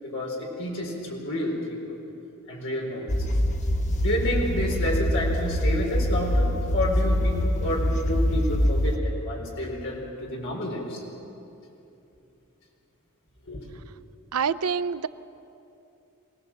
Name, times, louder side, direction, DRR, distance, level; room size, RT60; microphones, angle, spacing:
voice 1, 0.0-1.6 1.9-2.0 2.5-3.1 4.0-11.0 13.5-13.7, left 1 dB, 60° left, -1 dB, 4.3 m, -30 dB
sound 1, 3.1-9.0, equal, 35° left, 1.1 m, -24 dB
voice 2, 14.3-15.1, right 6 dB, 80° right, 14 dB, 0.6 m, -26 dB
23.5 x 18.0 x 7.4 m, 2.8 s
head